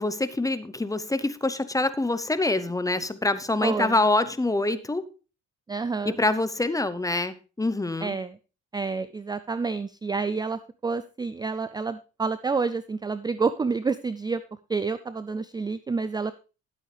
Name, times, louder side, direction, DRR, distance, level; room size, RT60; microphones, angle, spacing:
voice 1, 0.0-5.1 6.0-8.2, left 2 dB, 10° left, 13 dB, 0.7 m, -25 dB
voice 2, 3.6-3.9 5.7-6.1 8.0-8.4 8.7-14.4 14.7-16.3, right 4 dB, 15° right, 15 dB, 0.4 m, -29 dB
11.0 x 8.4 x 3.3 m, 0.33 s
cardioid pair, 90°, 30 cm